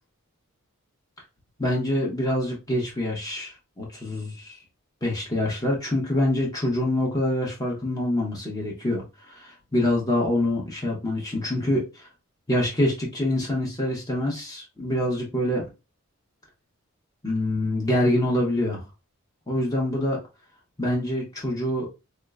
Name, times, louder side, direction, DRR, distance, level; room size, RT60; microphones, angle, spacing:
voice 1, 1.6-4.5 5.0-12.1 12.5-15.7 17.2-18.8 19.5-20.2 20.8-21.9, left 1 dB, 15° left, -3 dB, 0.7 m, -25 dB
4.3 x 2.0 x 2.3 m, 0.27 s
head